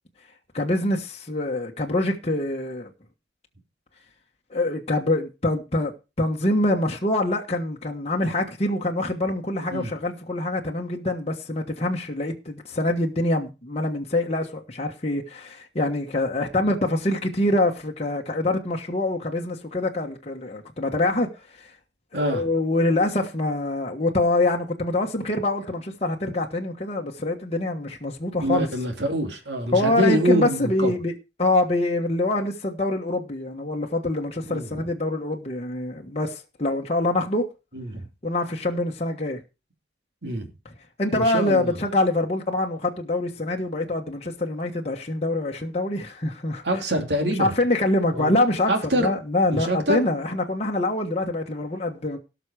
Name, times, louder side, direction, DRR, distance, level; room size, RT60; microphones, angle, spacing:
voice 1, 0.5-2.9 4.5-5.9 6.2-21.3 21.6-21.7 22.1-28.7 29.7-31.1 31.4-37.5 38.2-39.4 41.0-46.6 47.2-52.2, left 2 dB, 35° left, 1.3 m, -25 dB
voice 2, 22.1-22.5 28.4-30.9 34.5-34.9 37.7-38.1 40.2-40.5 41.1-41.8 46.6-47.5 48.1-48.3 48.7-49.1 49.5-50.0, equal, 65° right, 2.9 m, -25 dB
17.5 x 6.2 x 4.9 m
head